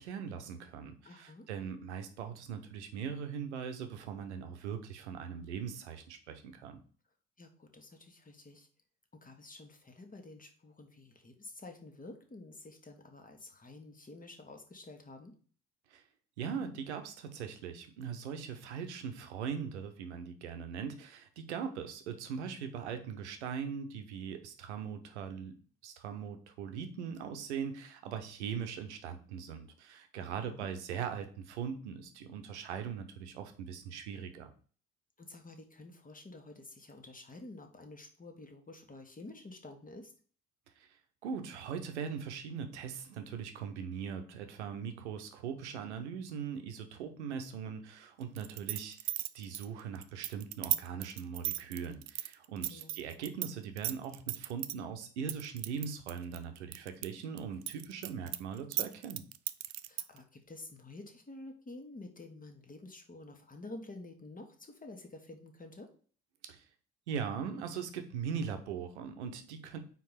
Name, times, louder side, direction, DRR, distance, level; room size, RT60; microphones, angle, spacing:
voice 1, 0.0-6.8 15.9-16.0 16.4-25.5 25.8-34.5 40.8-41.0 41.2-59.2 66.5-66.6 67.1-69.8, right 7 dB, 85° right, 7 dB, 0.8 m, -40 dB
voice 2, 1.0-1.5 7.4-8.7 9.1-15.4 30.1-30.7 35.2-40.1 52.7-53.0 59.9-65.9, left 2 dB, 25° left, 4 dB, 1.4 m, -50 dB
sound 1, 48.4-53.5 53.8-54.7 55.3-57.1 57.4-60.2, right 15 dB, 55° right, 0.5 m, -35 dB
4.6 x 3.8 x 5.6 m, 0.43 s
hypercardioid pair, 50°, 33 cm